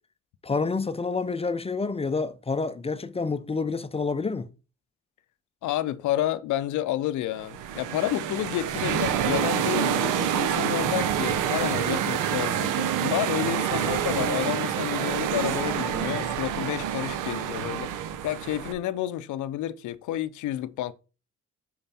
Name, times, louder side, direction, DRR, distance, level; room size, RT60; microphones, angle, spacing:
voice 1, 0.4-4.5, left 4 dB, 20° left, 0.5 m, -28 dB
voice 2, 5.6-17.9 18.2-20.9, left 13 dB, 75° left, 0.6 m, -30 dB
sound 1, 7.4-18.7, right 9 dB, 90° right, 0.8 m, -27 dB
5.5 x 4.9 x 4.2 m
cardioid pair, 90°, 30 cm